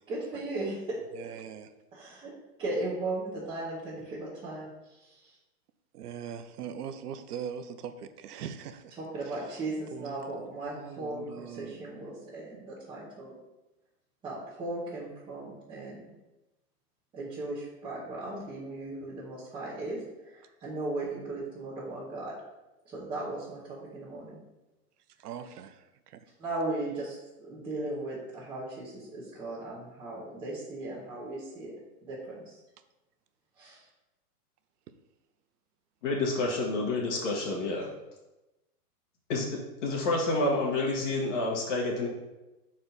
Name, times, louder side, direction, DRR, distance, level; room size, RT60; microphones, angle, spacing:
voice 1, 0.1-1.0 1.9-2.3 2.6-5.3 9.1-13.3 14.2-16.0 17.1-22.3 22.9-23.6 23.9-24.4 26.4-27.2 27.4-31.7 32.0-32.5 33.6-33.8, right 2 dB, 10° right, -12 dB, 1.0 m, -37 dB
voice 2, 1.1-1.7 5.9-9.6 9.9-11.8 25.2-26.2, right 8 dB, 85° right, 10 dB, 0.7 m, -42 dB
voice 3, 36.0-37.9 39.3-42.1, left 2 dB, 50° left, -2 dB, 1.8 m, -29 dB
6.3 x 4.2 x 4.0 m, 1.0 s
hypercardioid pair, 160°, 45 cm